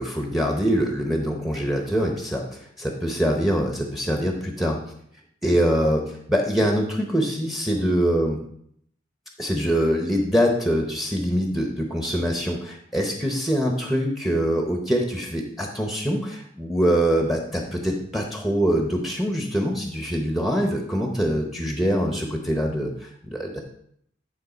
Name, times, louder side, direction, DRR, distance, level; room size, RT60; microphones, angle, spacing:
voice 1, 0.0-2.4 2.8-4.8 5.4-6.0 6.3-8.4 9.4-23.6, equal, ahead, 2 dB, 0.9 m, -24 dB
9.6 x 3.7 x 5.0 m, 0.68 s
head